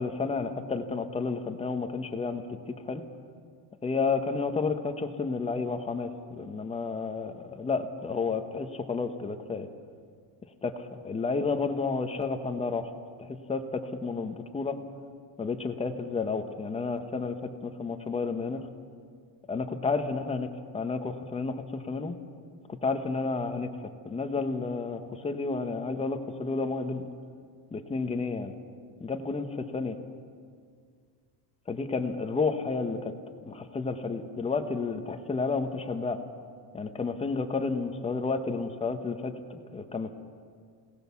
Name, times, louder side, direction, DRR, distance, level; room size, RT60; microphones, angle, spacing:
voice 1, 0.0-2.5 2.8-3.0 3.8-9.7 10.6-12.9 13.2-14.8 15.4-18.7 19.5-22.2 22.8-23.7 24.0-27.1 27.7-28.5 29.0-30.0 31.7-33.1 33.4-36.2 36.7-40.1, left 4 dB, 10° left, 7 dB, 1.0 m, -31 dB
25.5 x 18.0 x 7.0 m, 2.1 s
cardioid pair, 175°, 49 cm